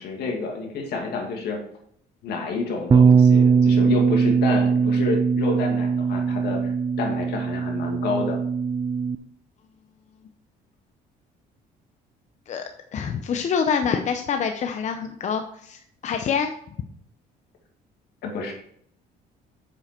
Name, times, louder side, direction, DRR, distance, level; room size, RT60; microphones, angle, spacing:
voice 1, 0.0-1.6 2.2-6.7 7.0-8.4 18.2-18.5, left 4 dB, 70° left, 1 dB, 2.4 m, -29 dB
Bass guitar, 2.9-9.2, right 6 dB, 25° right, 0.5 m, -20 dB
voice 2, 12.9-16.5, left 6 dB, 45° left, 6 dB, 0.7 m, -26 dB
7.5 x 7.5 x 4.5 m, 0.68 s
cardioid pair, 110°, 17 cm